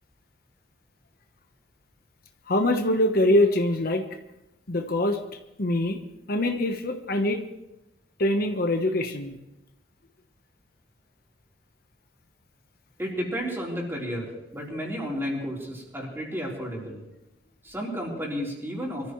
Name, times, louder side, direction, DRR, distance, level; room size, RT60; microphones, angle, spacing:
voice 1, 2.5-4.0 4.7-5.2 5.6-6.0 6.3-7.4 8.2-9.3, left 1 dB, 55° left, 5 dB, 1.1 m, -23 dB
voice 2, 13.0-17.0 17.6-19.1, equal, 15° right, -3 dB, 4.0 m, -32 dB
24.0 x 14.0 x 3.2 m, 0.95 s
head